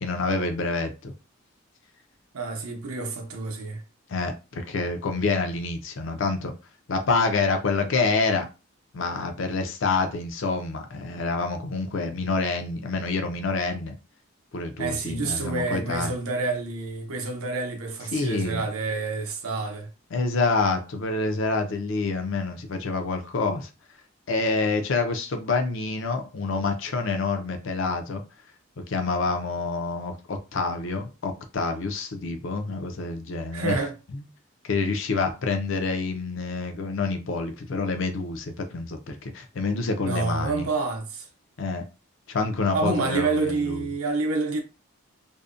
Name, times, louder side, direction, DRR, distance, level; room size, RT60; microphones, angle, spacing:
voice 1, 0.0-1.1 4.1-6.6 6.9-8.5 8.9-14.0 14.5-16.1 18.1-18.6 20.1-23.7 24.3-28.2 28.8-33.8 34.6-40.7 41.6-41.8 42.3-43.9, left 3 dB, 60° left, 0.4 m, -27 dB
voice 2, 2.3-3.8 14.8-19.9 33.5-33.9 40.0-41.3 42.7-44.6, right 3 dB, 85° right, 0.7 m, -28 dB
2.6 x 2.1 x 2.4 m
head